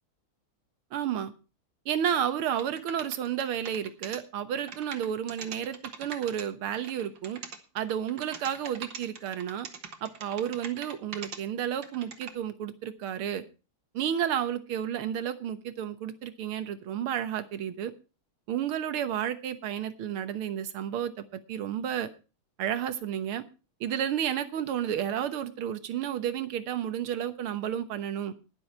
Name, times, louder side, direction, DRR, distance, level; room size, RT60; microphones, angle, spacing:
voice 1, 0.9-1.3 1.9-7.4 7.8-9.7 10.0-13.4 13.9-17.9 18.5-22.1 22.6-23.4 23.8-28.3, right 9 dB, 85° right, 11 dB, 2.0 m, -31 dB
sound 1, 2.5-4.2 4.6-6.4 6.7-11.4 11.6-12.3, right 6 dB, 60° right, 2.1 m, -42 dB
20.5 x 7.1 x 4.4 m, 0.33 s
omnidirectional pair, 2.3 m